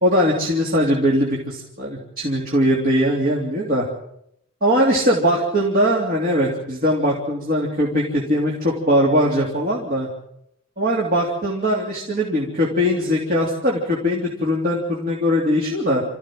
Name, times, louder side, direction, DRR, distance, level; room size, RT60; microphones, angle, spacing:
voice 1, 0.0-3.8 4.6-10.1 10.8-16.0, equal, 45° right, -3 dB, 3.4 m, -20 dB
27.0 x 15.0 x 7.8 m, 0.77 s
head